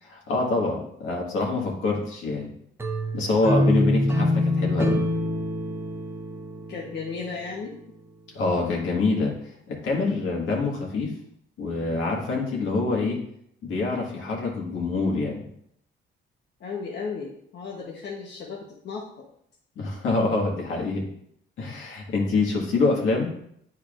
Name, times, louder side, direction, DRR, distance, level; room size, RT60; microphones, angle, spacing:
voice 1, 0.0-2.5 3.1-5.1 8.3-9.3 9.7-11.1 11.6-13.2 13.6-15.4 19.8-21.1 21.6-23.3, left 3 dB, 75° left, -1 dB, 1.6 m, -26 dB
sound 1, 2.8-7.7, left 1 dB, 10° right, 0.8 m, -25 dB
voice 2, 3.7-4.1 6.7-7.7 16.6-19.3, left 5 dB, 60° left, -3 dB, 1.0 m, -35 dB
8.6 x 4.4 x 2.5 m, 0.71 s
cardioid pair, 90°, 20 cm